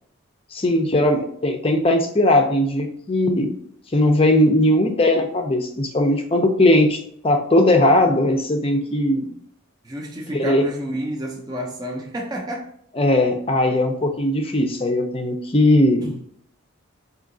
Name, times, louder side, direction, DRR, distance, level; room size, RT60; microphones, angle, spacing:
voice 1, 0.5-3.5 3.9-7.0 7.2-9.3 10.3-10.6 13.0-16.2, left 1 dB, 25° left, 0.5 m, -18 dB
voice 2, 9.8-12.7, right 1 dB, 20° right, 0.5 m, -30 dB
4.9 x 2.8 x 2.6 m
head